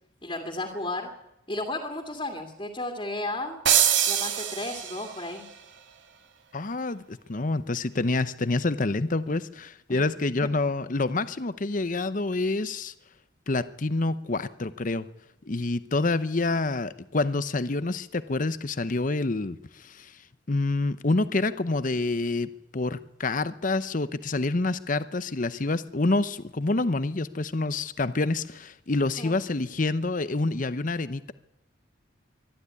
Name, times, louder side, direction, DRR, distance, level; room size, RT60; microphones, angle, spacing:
voice 1, 0.2-1.1 1.5-3.6 4.1-5.5 9.9-10.0 10.4-10.5 29.1-29.4, left 2 dB, 25° left, 2 dB, 2.4 m, -33 dB
sound 1, 3.7-5.3, right 10 dB, 70° right, 2.7 m, -24 dB
voice 2, 6.5-12.9 13.5-15.1 15.4-20.2 20.5-31.3, left 2 dB, 45° left, 14 dB, 0.8 m, -27 dB
24.0 x 12.5 x 9.7 m, 0.82 s
head